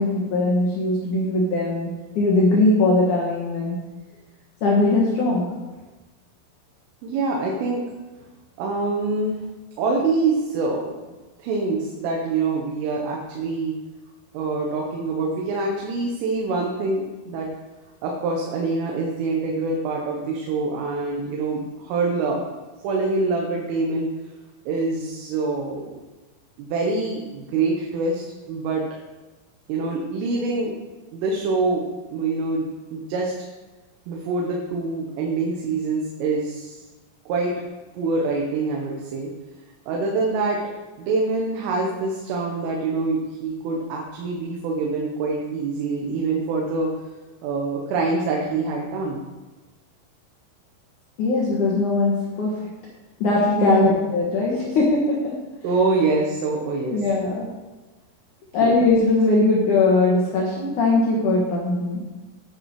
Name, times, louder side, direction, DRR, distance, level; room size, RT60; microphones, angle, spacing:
voice 1, 0.0-1.9 2.2-3.8 4.6-5.5 51.2-52.6 53.2-55.4 56.9-57.5 58.5-62.0, left 3 dB, 65° left, -3 dB, 2.0 m, -20 dB
voice 2, 7.0-7.8 8.6-9.4 9.8-11.1 11.4-13.8 14.3-17.5 18.0-22.4 22.8-24.1 24.7-26.0 26.6-28.2 28.5-28.8 29.7-30.8 31.1-33.3 34.1-36.8 37.3-37.5 37.9-39.3 39.9-40.6 41.0-46.9 47.4-49.2 53.6-53.9 55.6-57.0 58.6-58.7, right 3 dB, 80° right, 0 dB, 3.6 m, -25 dB
10.0 x 9.7 x 4.8 m, 1.2 s
omnidirectional pair, 5.8 m